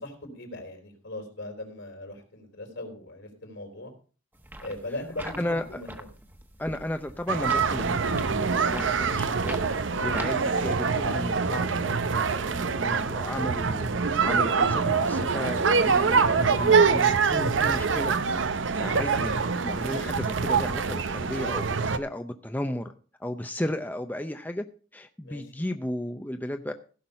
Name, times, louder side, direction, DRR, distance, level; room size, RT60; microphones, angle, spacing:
voice 1, 0.0-3.9 4.6-6.1 9.9-10.1 13.3-14.1 25.2-25.7, left 1 dB, 70° left, 4 dB, 3.7 m, -40 dB
sound 1, 4.4-10.7, right 1 dB, 10° right, 1.2 m, -42 dB
voice 2, 5.4-5.8 6.6-22.9 23.2-24.6 24.9-26.7, left 1 dB, 10° left, 6 dB, 0.6 m, -34 dB
sound 2, 7.3-22.0, right 5 dB, 80° right, 0.8 m, -25 dB
16.0 x 6.1 x 5.4 m, 0.38 s
head